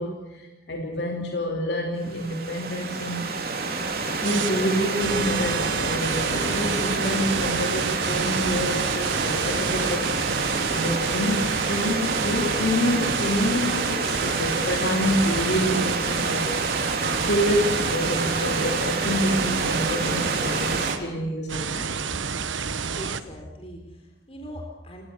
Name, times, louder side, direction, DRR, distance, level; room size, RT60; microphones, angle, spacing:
voice 1, 0.0-3.3 4.2-10.0 10.7-16.5 17.2-22.0, equal, 60° left, 1 dB, 3.1 m, -27 dB
Stream / Liquid, 2.0-20.9, right 3 dB, 50° right, 3.4 m, -28 dB
sound 1, 4.2-4.5 5.0-21.0 21.5-23.2, right 6 dB, 80° right, 1.2 m, -30 dB
voice 2, 23.0-25.0, equal, 30° left, 2 dB, 4.1 m, -40 dB
27.0 x 19.0 x 7.0 m, 1.0 s
head